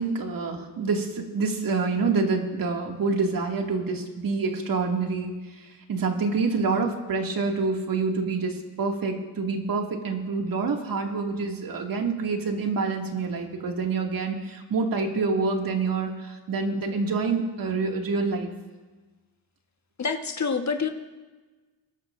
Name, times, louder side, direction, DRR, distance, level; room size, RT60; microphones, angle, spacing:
voice 1, 0.0-18.5, right 4 dB, 55° right, 1 dB, 2.4 m, -27 dB
voice 2, 20.0-20.9, left 5 dB, 40° left, 5 dB, 1.4 m, -27 dB
22.5 x 12.0 x 2.6 m, 1.3 s
supercardioid pair, 70°, 41 cm